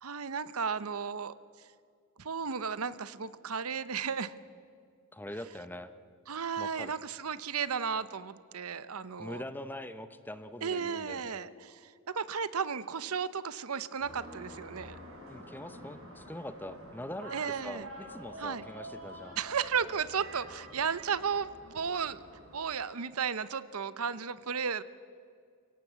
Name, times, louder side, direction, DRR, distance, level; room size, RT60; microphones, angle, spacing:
voice 1, 0.0-1.3 2.2-4.3 6.3-9.4 10.6-15.0 17.3-17.9 18.4-18.6 19.4-22.2 22.5-24.8, right 6 dB, 85° right, 15 dB, 0.8 m, -34 dB
voice 2, 5.1-5.9 6.6-6.9 9.2-11.4 15.3-19.4, left 1 dB, 10° left, 11 dB, 0.7 m, -43 dB
sound 1, 14.0-22.6, equal, 65° right, 5.4 m, -48 dB
23.5 x 17.0 x 8.2 m, 2.2 s
head